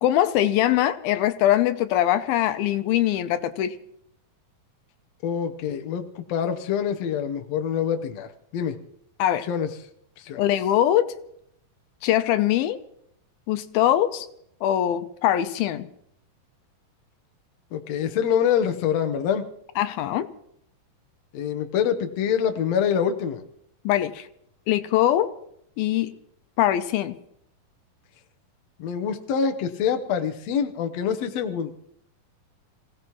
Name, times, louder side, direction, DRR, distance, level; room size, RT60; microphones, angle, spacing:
voice 1, 0.0-3.8 9.2-9.5 10.4-11.1 12.0-12.8 13.5-14.3 14.6-15.9 19.8-20.3 23.8-24.3 24.7-25.3 25.8-26.2 26.6-27.1, left 12 dB, 90° left, 11 dB, 2.6 m, -22 dB
voice 2, 5.2-8.8 9.5-9.7 10.2-10.4 17.7-19.5 21.3-23.4 28.8-31.8, left 8 dB, 65° left, 6 dB, 1.7 m, -25 dB
26.5 x 16.5 x 3.1 m, 0.72 s
omnidirectional pair, 4.1 m